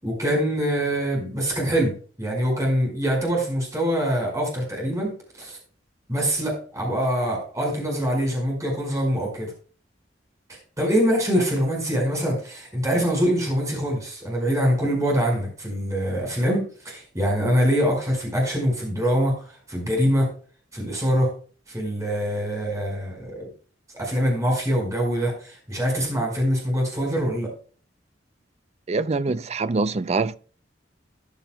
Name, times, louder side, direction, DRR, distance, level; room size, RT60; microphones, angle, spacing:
voice 1, 0.0-5.6 6.1-9.5 10.8-19.4 19.7-20.3 20.7-21.3 21.7-23.5 23.9-27.5, equal, 20° right, 4.9 m, -24 dB
voice 2, 28.9-30.4, right 3 dB, 35° right, 0.4 m, -24 dB
13.5 x 10.0 x 2.2 m
head